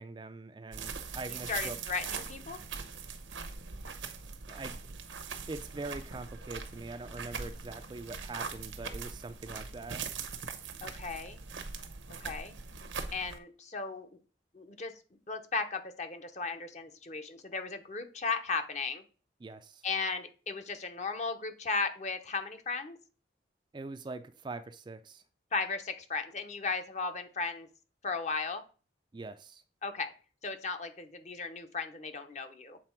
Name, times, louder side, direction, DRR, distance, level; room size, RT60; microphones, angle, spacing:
voice 1, 0.0-1.8 4.5-4.8 5.5-10.0 19.4-19.8 23.7-25.2 29.1-29.6, right 3 dB, 25° right, 0.3 m, -43 dB
sound 1, 0.7-13.4, right 5 dB, 85° right, 0.9 m, -41 dB
voice 2, 1.5-2.6 10.8-11.4 12.2-12.5 13.1-14.2 14.5-14.9 15.3-19.0 19.8-23.0 25.5-27.7 28.0-28.6 29.8-30.1 30.4-32.8, left 4 dB, 40° left, 0.8 m, -36 dB
7.6 x 4.1 x 4.4 m
head